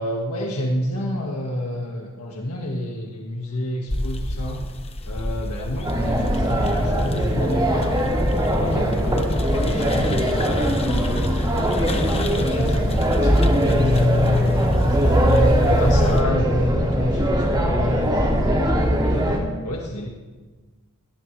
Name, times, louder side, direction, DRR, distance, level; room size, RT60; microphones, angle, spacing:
voice 1, 0.0-4.6 5.0-11.2 11.7-19.3 19.6-20.1, left 1 dB, 80° left, -1 dB, 1.9 m, -29 dB
sound 1, 3.9-16.2, left 1 dB, 25° left, 1.1 m, -31 dB
sound 2, 5.8-19.4, equal, 20° right, 2.7 m, -20 dB
21.0 x 18.5 x 3.4 m, 1.3 s
head